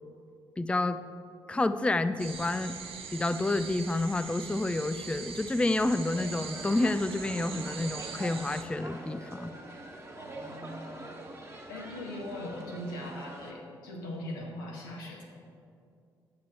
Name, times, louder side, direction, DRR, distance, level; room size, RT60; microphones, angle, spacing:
voice 1, 0.6-1.0 1.5-2.8 3.1-9.5, left 2 dB, 10° left, 11 dB, 0.4 m, -29 dB
sound 1, 2.2-8.6, right 6 dB, 60° right, 0.8 m, -42 dB
sound 2, 6.1-13.5, right 2 dB, 25° right, 1.5 m, -44 dB
voice 2, 10.1-11.1 11.7-15.2, left 1 dB, 85° left, -1 dB, 1.1 m, -40 dB
9.5 x 7.3 x 4.3 m, 2.4 s
hypercardioid pair, 40°, 11 cm